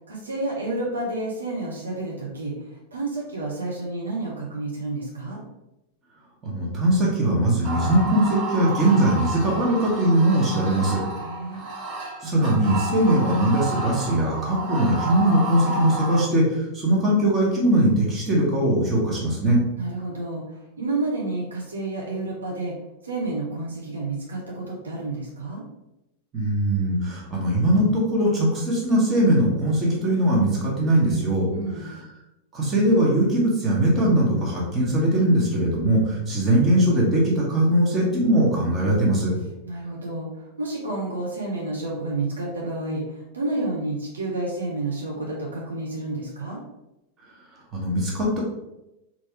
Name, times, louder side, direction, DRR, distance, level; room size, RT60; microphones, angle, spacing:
voice 1, 0.1-5.4 11.2-11.6 19.8-22.7 23.0-25.6 31.5-31.9 39.6-46.6, right 2 dB, 70° right, -4 dB, 1.1 m, -30 dB
voice 2, 6.4-11.0 12.2-19.6 26.3-31.5 32.5-39.3 47.7-48.4, right 1 dB, 20° right, -5 dB, 1.6 m, -21 dB
sound 1, 7.6-16.3, right 2 dB, 40° right, 1.1 m, -31 dB
4.1 x 3.1 x 3.6 m, 0.92 s
figure-of-eight pair, 90°, 0 cm